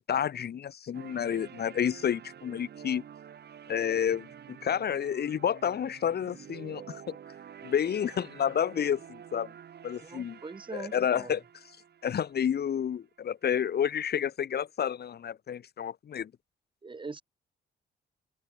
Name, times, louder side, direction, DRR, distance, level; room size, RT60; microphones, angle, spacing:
voice 1, 0.1-3.0 3.7-7.2 7.6-9.5 9.8-10.4 10.7-11.4 12.0-16.3, left 8 dB, 55° left, 1.9 m, -30 dB
sound 1, 0.9-13.0, right 8 dB, 55° right, 2.9 m, -49 dB
voice 2, 10.0-11.3 16.8-17.2, right 4 dB, 25° right, 1.6 m, -42 dB
open air
cardioid pair, 90°, 20 cm